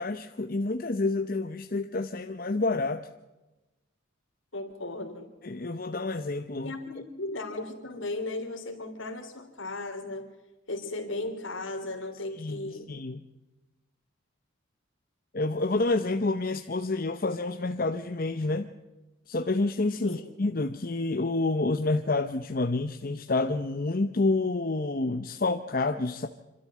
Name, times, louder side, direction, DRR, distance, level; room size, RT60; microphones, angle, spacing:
voice 1, 0.0-3.0 5.4-6.7 12.4-13.2 15.3-18.7 19.3-26.3, left 2 dB, 45° left, 6 dB, 0.8 m, -28 dB
voice 2, 4.5-5.3 6.6-10.3 10.7-12.9 20.0-20.2, left 2 dB, 70° left, 4 dB, 3.2 m, -36 dB
27.0 x 13.0 x 7.5 m, 1.1 s
head